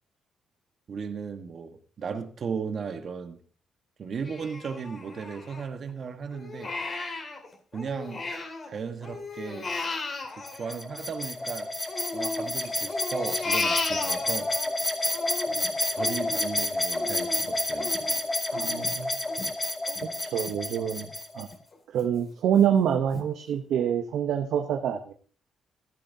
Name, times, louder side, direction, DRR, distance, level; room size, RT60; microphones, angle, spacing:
voice 1, 0.9-3.4 4.0-6.7 7.7-8.2 8.7-9.7 10.3-11.7 12.1-14.5 15.5-17.9, right 6 dB, 50° right, 1.3 m, -36 dB
Crying sobbing, 4.2-5.9 6.3-8.7 9.0-11.4 11.9-14.7 15.1-20.6 21.0-21.1 21.5-22.1 22.6-22.7 23.1-23.3, left 3 dB, 40° left, 2.3 m, -35 dB
sound 1, 10.4-21.5, left 1 dB, 20° left, 2.2 m, -30 dB
voice 2, 18.5-19.2 20.0-21.1 21.3-21.5 21.9-25.1, right 9 dB, 80° right, 0.8 m, -26 dB
14.0 x 11.5 x 2.7 m
cardioid pair, 90°, 0 cm